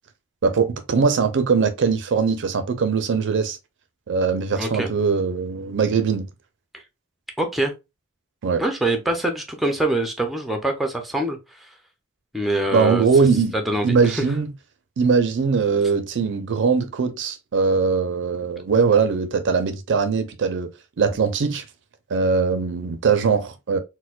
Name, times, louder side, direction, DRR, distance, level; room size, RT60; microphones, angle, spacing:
voice 1, 0.4-3.6 4.1-6.3 8.4-8.6 12.7-13.5 13.8-14.5 15.0-20.7 21.0-21.6 22.1-23.8, right 5 dB, 55° right, 0.5 m, -21 dB
voice 2, 4.6-4.9 7.4-7.7 8.6-11.7 12.3-13.1 13.5-14.2, right 1 dB, ahead, 0.5 m, -24 dB
4.3 x 2.1 x 2.3 m
head